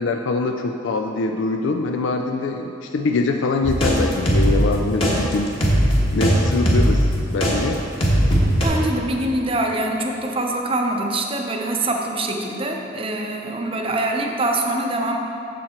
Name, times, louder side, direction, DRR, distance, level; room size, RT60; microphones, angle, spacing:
voice 1, 0.0-5.5 6.1-7.8, left 3 dB, 75° left, 4 dB, 0.4 m, -23 dB
sound 1, 3.6-7.6 8.0-8.7, equal, 30° left, 1.3 m, -18 dB
voice 2, 8.6-15.2, right 2 dB, 30° right, 2 dB, 0.6 m, -24 dB
7.5 x 7.3 x 4.3 m, 2.9 s
head